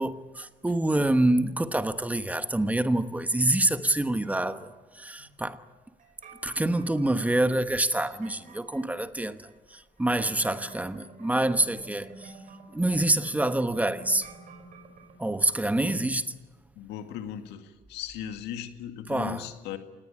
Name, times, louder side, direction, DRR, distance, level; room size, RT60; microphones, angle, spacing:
voice 1, 0.0-4.7 5.0-5.6 6.4-12.3 12.7-14.3 15.2-16.3 19.1-19.4, right 1 dB, 10° right, 1.1 m, -26 dB
sound 1, 3.2-4.8 6.0-15.2, right 3 dB, 50° right, 5.2 m, -51 dB
voice 2, 16.8-19.8, left 9 dB, 90° left, 2.1 m, -38 dB
27.0 x 19.0 x 8.7 m
cardioid pair, 110°, 17 cm